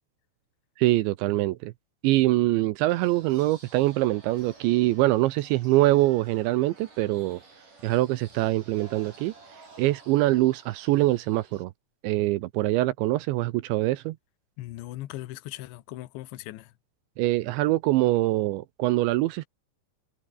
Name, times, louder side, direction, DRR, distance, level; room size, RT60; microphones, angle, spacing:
voice 1, 0.8-1.7 2.0-7.4 7.8-9.3 9.8-11.7 12.0-14.2 17.2-19.5, right 17 dB, 80° right, 2.9 m, -24 dB
sound 1, 2.9-11.6, right 3 dB, 40° right, 9.1 m, -52 dB
voice 2, 14.6-16.7, left 16 dB, 75° left, 3.3 m, -39 dB
omnidirectional pair, 5.7 m